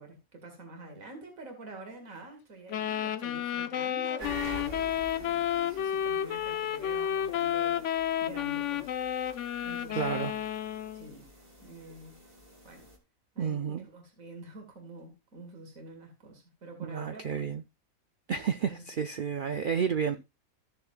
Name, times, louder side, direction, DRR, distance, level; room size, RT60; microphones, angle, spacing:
voice 1, 0.0-4.5 5.1-7.9 8.2-9.3 9.6-10.4 10.9-11.3 11.6-12.2 12.6-12.9 13.3-17.5 19.1-19.2 20.1-20.2, right 2 dB, 65° right, 2.6 m, -47 dB
sound 1, 2.7-11.1, left 10 dB, 65° left, 0.9 m, -31 dB
sound 2, 4.2-13.0, equal, 40° right, 2.3 m, -47 dB
voice 2, 9.9-10.3 13.4-13.9 16.8-17.6 18.3-20.2, right 7 dB, 80° right, 0.4 m, -31 dB
14.5 x 6.7 x 2.4 m
omnidirectional pair, 1.5 m